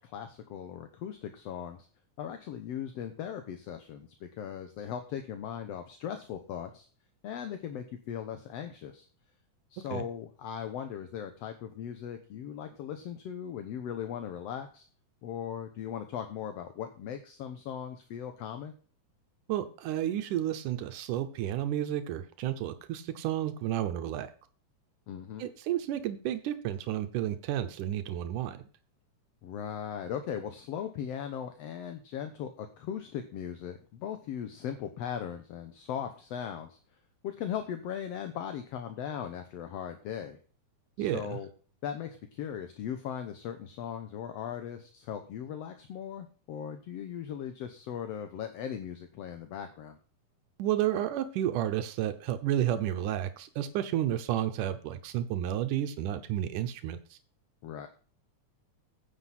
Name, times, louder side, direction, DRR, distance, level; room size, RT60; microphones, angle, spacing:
voice 1, 0.0-1.8 2.2-6.9 7.2-9.1 9.7-14.9 15.2-18.7 25.1-25.5 29.4-36.8 37.2-40.4 41.0-41.5 41.8-50.0 57.6-57.9, left 9 dB, 65° left, 8 dB, 1.8 m, -38 dB
voice 2, 19.5-24.3 25.4-28.6 41.0-41.4 50.6-57.2, right 11 dB, 85° right, 9 dB, 2.4 m, -31 dB
9.7 x 7.8 x 5.8 m, 0.41 s
omnidirectional pair, 3.6 m